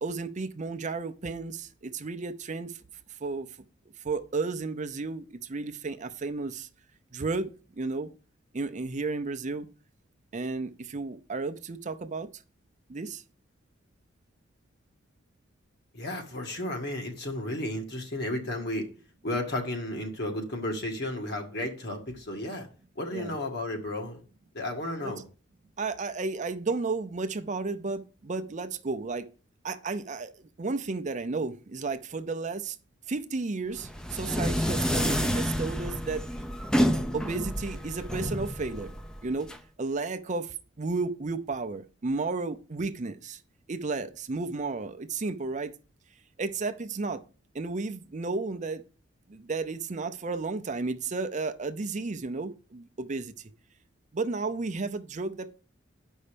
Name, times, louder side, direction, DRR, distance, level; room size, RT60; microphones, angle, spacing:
voice 1, 0.0-2.8 3.2-3.5 4.0-6.7 7.1-8.1 8.5-9.7 10.3-12.3 12.9-13.2 23.1-23.4 25.0-25.1 25.8-29.3 29.6-32.8 33.1-36.2 37.1-38.9 39.2-39.5 39.8-43.4 43.7-45.7 46.4-47.2 47.5-48.8 49.3-53.3 54.1-55.6, right 3 dB, 40° right, 0.6 m, -33 dB
voice 2, 15.9-18.9 19.2-22.7 23.0-24.2 24.5-25.2, left 1 dB, 60° left, 1.8 m, -33 dB
sound 1, 33.8-39.6, equal, 5° left, 0.5 m, -29 dB
8.0 x 5.5 x 5.1 m
head